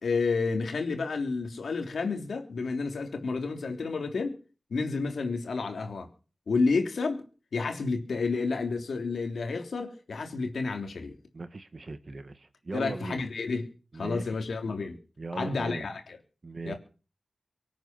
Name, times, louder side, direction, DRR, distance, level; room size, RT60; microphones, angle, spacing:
voice 1, 0.0-4.4 4.7-6.1 6.5-7.2 7.5-11.2 12.7-13.7 13.9-15.0 15.4-16.0 16.6-16.8, left 4 dB, 80° left, 3.4 m, -30 dB
voice 2, 11.3-13.2 13.9-14.3 15.2-15.9 16.4-16.7, right 3 dB, 45° right, 1.8 m, -38 dB
24.5 x 9.3 x 6.2 m
wide cardioid pair, 100°, 0 cm